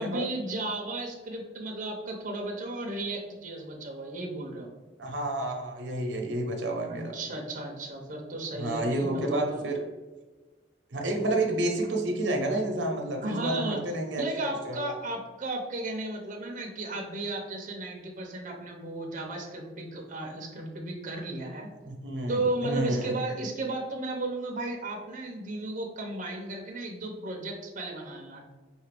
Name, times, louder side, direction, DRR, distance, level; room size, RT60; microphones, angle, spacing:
voice 1, 0.0-4.7 6.9-9.6 13.2-13.8 14.2-21.7 22.3-28.4, right 2 dB, 45° right, 1 dB, 0.6 m, -34 dB
voice 2, 5.0-7.2 8.6-9.8 10.9-14.8 21.8-23.1, right 1 dB, 80° right, 2 dB, 0.7 m, -30 dB
5.1 x 2.4 x 3.3 m, 1.2 s
head